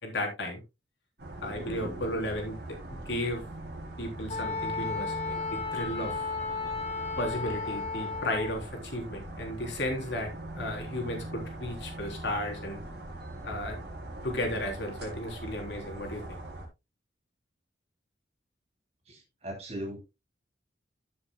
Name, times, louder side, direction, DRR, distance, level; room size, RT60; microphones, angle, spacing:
voice 1, 0.0-0.6 1.4-2.6 2.9-3.4 4.0-6.3 7.2-12.8 13.4-13.8 14.2-16.4, left 1 dB, 70° left, 2 dB, 3.5 m, -34 dB
sound 1, 1.2-16.7, right 1 dB, 60° right, 4.2 m, -41 dB
Wind instrument woodwind instrument, 4.3-8.6, left 4 dB, 35° left, 3.2 m, -34 dB
voice 2, 19.1-20.0, equal, 35° right, 0 dB, 2.9 m, -39 dB
15.0 x 6.9 x 2.2 m, 0.23 s
head